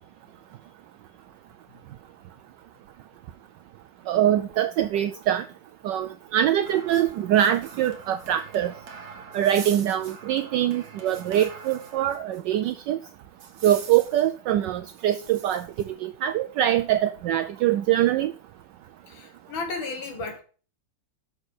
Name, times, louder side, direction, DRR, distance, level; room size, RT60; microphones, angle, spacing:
voice 1, 4.1-5.4 5.8-8.7 9.3-13.0 13.6-18.3, right 11 dB, 75° right, 1.1 m, -23 dB
sound 1, 6.6-12.4 12.7-12.8 13.4-14.3 14.9-15.9, right 5 dB, 50° right, 1.1 m, -43 dB
voice 2, 19.1-20.4, left 3 dB, 80° left, 2.3 m, -33 dB
6.5 x 6.1 x 6.3 m
omnidirectional pair, 2.1 m